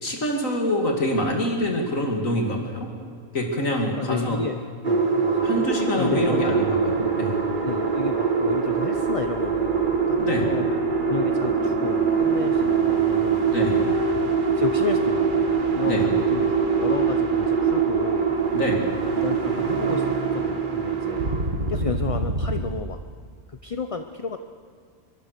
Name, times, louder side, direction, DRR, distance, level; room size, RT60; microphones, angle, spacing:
voice 1, 0.0-2.9 3.3-4.4 5.4-7.4 10.2-10.5 13.5-13.9 15.8-16.1 18.5-18.9, left 1 dB, 70° left, 1 dB, 3.0 m, -25 dB
voice 2, 3.7-5.7 6.0-6.7 7.6-10.7 11.1-13.7 14.5-18.4 19.0-20.0 20.3-21.2 21.7-23.0 23.5-24.4, left 5 dB, 35° left, 7 dB, 0.6 m, -32 dB
sound 1, 4.8-22.6, right 5 dB, 35° right, 1.5 m, -23 dB
23.5 x 23.0 x 6.8 m, 2.1 s
omnidirectional pair, 1.5 m